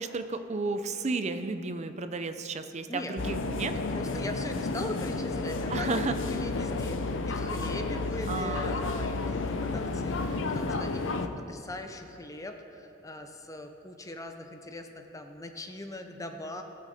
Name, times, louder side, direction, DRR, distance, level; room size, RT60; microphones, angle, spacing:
voice 1, 0.0-3.7 5.7-6.2 8.3-8.7, right 3 dB, 35° right, 9 dB, 0.5 m, -33 dB
voice 2, 2.9-16.6, left 1 dB, 15° left, 5 dB, 0.6 m, -40 dB
sound 1, 3.2-11.3, left 3 dB, 65° left, 0.6 m, -31 dB
18.5 x 6.4 x 4.1 m, 2.9 s
head